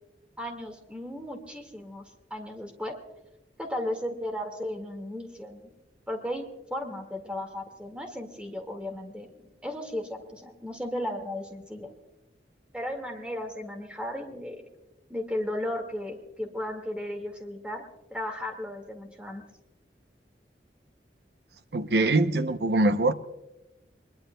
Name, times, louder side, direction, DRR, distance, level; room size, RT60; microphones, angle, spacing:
voice 1, 0.4-2.0 2.3-3.0 3.6-5.7 6.1-9.3 9.6-11.9 12.7-14.6 15.1-17.9 18.1-19.4, left 1 dB, 5° right, 3 dB, 1.9 m, -35 dB
voice 2, 21.7-23.1, right 2 dB, 65° right, 9 dB, 0.7 m, -23 dB
21.5 x 21.0 x 2.2 m, 1.0 s
head